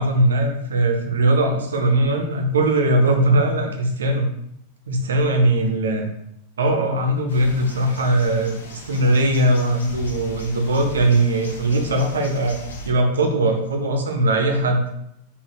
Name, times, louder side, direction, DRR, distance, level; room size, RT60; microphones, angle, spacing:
voice 1, 0.0-4.3 4.9-6.1 6.6-12.6 12.8-14.8, right 1 dB, 70° right, 4 dB, 0.7 m, -20 dB
sound 1, 7.3-12.9, equal, 65° left, 0.7 m, -37 dB
4.1 x 4.0 x 2.9 m, 0.76 s
figure-of-eight pair, 90°, 0 cm